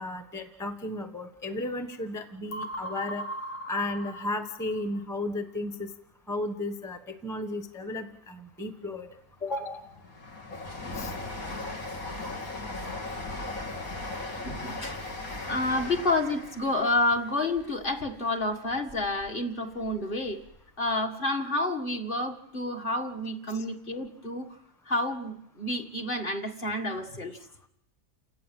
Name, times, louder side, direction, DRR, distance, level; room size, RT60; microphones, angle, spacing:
voice 1, 0.0-3.2 3.7-5.9 6.3-9.1 9.4-9.8 10.9-11.1 23.5-23.6, left 2 dB, ahead, 8 dB, 1.1 m, -34 dB
sound 1, 2.5-5.1, right 1 dB, 85° left, 2.5 m, -38 dB
Train, 9.1-19.3 19.7-20.6 20.9-21.0, left 2 dB, 70° left, 3.4 m, -38 dB
voice 2, 14.4-15.0 15.5-20.4 20.8-24.5 24.9-27.5, left 2 dB, 35° left, 3 dB, 1.9 m, -29 dB
29.5 x 18.0 x 7.6 m, 0.80 s
omnidirectional pair, 1.6 m